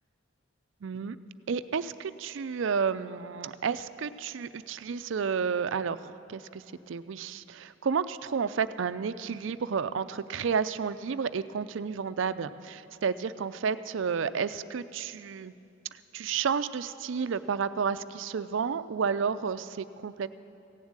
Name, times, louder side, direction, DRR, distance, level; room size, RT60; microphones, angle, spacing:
voice 1, 0.8-1.2 1.5-15.5 15.9-20.3, right 6 dB, 65° right, 14 dB, 0.4 m, -31 dB
15.5 x 7.2 x 8.8 m, 2.7 s
head